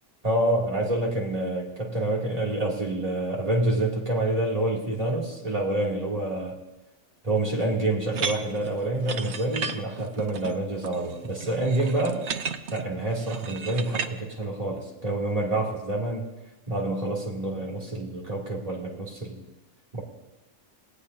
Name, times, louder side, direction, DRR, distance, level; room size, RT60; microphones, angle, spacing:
voice 1, 0.2-6.6 7.2-12.2 12.7-16.3 16.7-19.4 19.9-20.0, right 2 dB, 25° right, -3 dB, 2.9 m, -27 dB
sound 1, 8.1-14.1, right 5 dB, 55° right, 1.0 m, -34 dB
28.0 x 18.5 x 2.8 m, 1.1 s
omnidirectional pair, 1.5 m